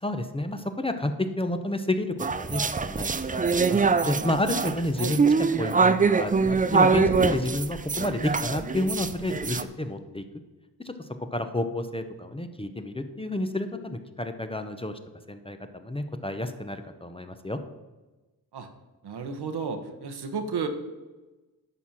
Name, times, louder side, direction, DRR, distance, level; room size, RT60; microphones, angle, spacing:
voice 1, 0.0-5.2 5.6-10.2 10.8-10.9 11.3-15.0 15.3-17.6, left 1 dB, 15° left, 8 dB, 0.7 m, -30 dB
sound 1, 2.2-9.6, right 4 dB, 20° right, 0.4 m, -24 dB
voice 2, 19.0-20.7, right 5 dB, 75° right, 7 dB, 1.1 m, -32 dB
11.0 x 4.3 x 7.3 m, 1.1 s
wide cardioid pair, 95°, 39 cm